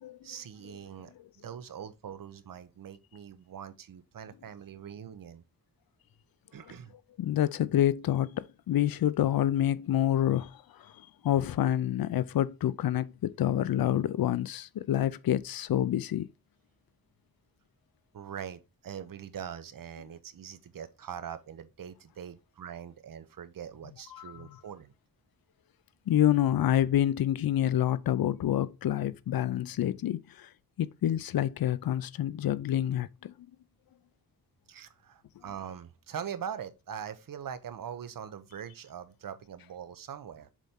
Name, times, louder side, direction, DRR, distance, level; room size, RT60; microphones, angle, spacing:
voice 1, 0.2-1.1 1.4-5.4 6.5-6.9 18.1-24.9 34.7-40.5, right 8 dB, 70° right, 0.8 m, -42 dB
voice 2, 7.2-10.5 10.8-16.3 24.1-24.5 26.1-30.5 30.8-33.3, left 12 dB, 80° left, 0.5 m, -27 dB
7.3 x 4.2 x 3.6 m
wide cardioid pair, 115°, 35 cm